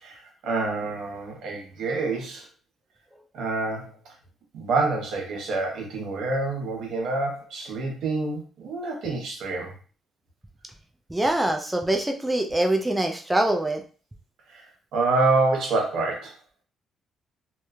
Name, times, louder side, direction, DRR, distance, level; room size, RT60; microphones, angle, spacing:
voice 1, 0.0-2.5 3.3-3.9 4.5-9.7 14.5-16.3, right 3 dB, 80° right, 0 dB, 0.9 m, -27 dB
voice 2, 11.1-13.8, right 1 dB, 10° right, 3 dB, 0.4 m, -24 dB
3.0 x 2.0 x 2.3 m, 0.38 s
cardioid pair, 90°, 0 cm